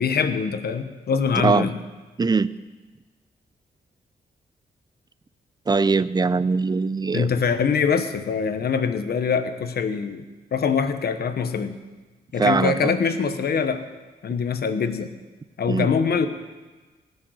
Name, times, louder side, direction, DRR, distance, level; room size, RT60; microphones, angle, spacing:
voice 1, 0.0-1.7 7.1-10.2 10.5-11.7 12.3-13.8 14.2-15.1 15.6-16.3, left 6 dB, 70° left, 10 dB, 1.1 m, -23 dB
voice 2, 2.2-2.5 5.7-7.3 12.4-12.9 15.7-15.9, right 4 dB, 25° right, 16 dB, 0.5 m, -21 dB
17.5 x 6.6 x 7.9 m, 1.3 s
cardioid pair, 90°, 17 cm